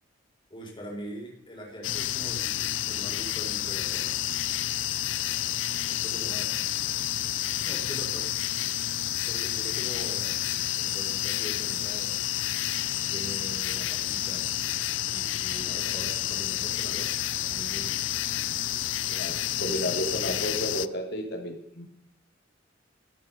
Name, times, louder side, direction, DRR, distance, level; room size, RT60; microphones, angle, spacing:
voice 1, 0.5-4.3 5.9-6.6 7.6-8.4 9.3-10.4 10.8-12.2 13.1-14.5 15.1-18.1, equal, 25° left, 0 dB, 4.5 m, -42 dB
sound 1, 1.8-20.9, left 13 dB, 75° left, 0.5 m, -30 dB
voice 2, 19.1-21.8, equal, 60° left, 3 dB, 3.4 m, -32 dB
14.5 x 13.5 x 5.5 m, 0.70 s
head